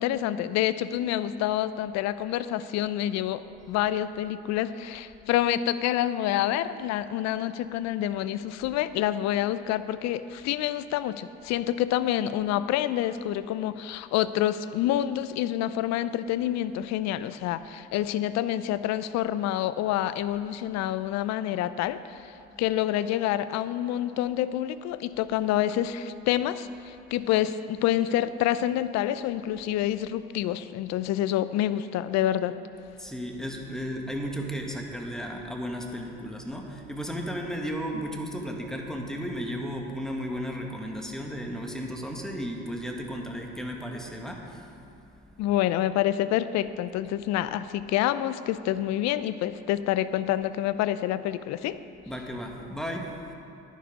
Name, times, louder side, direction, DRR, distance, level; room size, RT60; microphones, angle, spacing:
voice 1, 0.0-32.6 45.4-51.8, left 12 dB, 60° left, 14 dB, 0.6 m, -27 dB
voice 2, 33.0-44.7 52.0-53.1, equal, ahead, 1 dB, 1.8 m, -34 dB
10.0 x 10.0 x 5.2 m, 2.7 s
hypercardioid pair, 60°, 31 cm